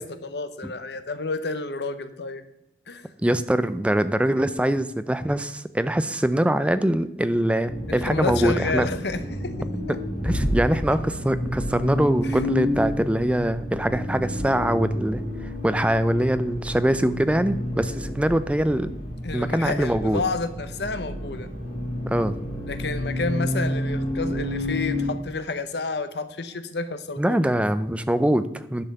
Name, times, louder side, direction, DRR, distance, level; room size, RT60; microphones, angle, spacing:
voice 1, 0.0-2.4 2.9-3.1 7.9-9.5 9.9-10.0 12.2-12.5 19.2-21.5 22.7-27.4, left 3 dB, 70° left, 10 dB, 0.9 m, -30 dB
voice 2, 3.2-8.9 9.9-15.2 15.6-18.9 19.3-20.2 22.1-22.4 27.2-28.8, right 1 dB, 5° right, 12 dB, 0.4 m, -23 dB
Accelerating revving vroom, 7.7-25.1, left 1 dB, 50° left, 3.5 m, -30 dB
10.5 x 5.6 x 6.7 m, 0.88 s
head